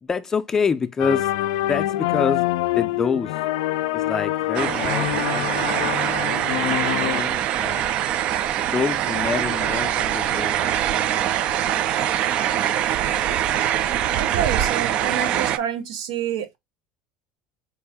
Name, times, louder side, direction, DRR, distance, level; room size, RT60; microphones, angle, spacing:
voice 1, 0.0-1.3 1.7-3.4 3.9-5.9 6.1-6.5 7.0-7.9 8.6-11.1, left 5 dB, 20° left, 0.4 m, -27 dB
sound 1, 1.0-7.2, left 15 dB, 85° left, 0.3 m, -25 dB
sound 2, 4.5-15.6, right 11 dB, 45° right, 0.3 m, -23 dB
voice 2, 14.2-16.6, right 9 dB, 85° right, 0.9 m, -28 dB
4.6 x 2.6 x 3.4 m
cardioid pair, 145°, 3 cm